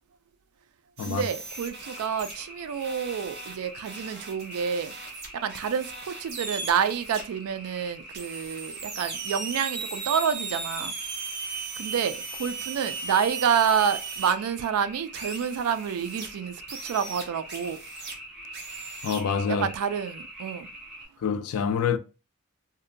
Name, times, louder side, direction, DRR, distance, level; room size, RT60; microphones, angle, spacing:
sound 1, 1.0-2.4 2.8-7.2 8.1-14.3 15.1-16.3 16.7-18.1 18.5-19.2, right 4 dB, 50° right, 0.7 m, -37 dB
voice 1, 1.0-4.9 5.3-10.9 11.8-17.8 19.6-20.7, right 7 dB, 85° right, 0.3 m, -28 dB
sound 2, 1.5-21.0, right 1 dB, ahead, 0.7 m, -45 dB
voice 2, 19.0-19.7 21.2-22.0, left 6 dB, 85° left, 0.4 m, -26 dB
2.7 x 2.1 x 2.5 m
head